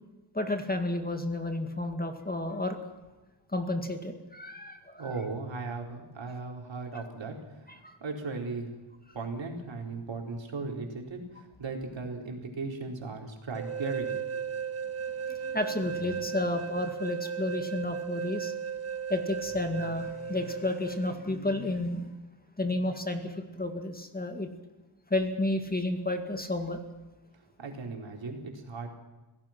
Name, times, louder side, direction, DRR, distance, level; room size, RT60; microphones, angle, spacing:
voice 1, 0.3-2.8 3.5-5.1 7.7-8.0 15.3-18.5 19.1-22.1 22.6-24.5 25.1-26.8, left 2 dB, 20° left, 6 dB, 2.1 m, -31 dB
voice 2, 5.0-8.7 9.1-14.4 27.6-28.9, right 3 dB, 60° right, 1 dB, 4.5 m, -37 dB
sound 1, 13.5-21.2, right 7 dB, 30° right, 1.0 m, -36 dB
26.5 x 17.5 x 6.0 m, 1.1 s
wide cardioid pair, 105°, 50 cm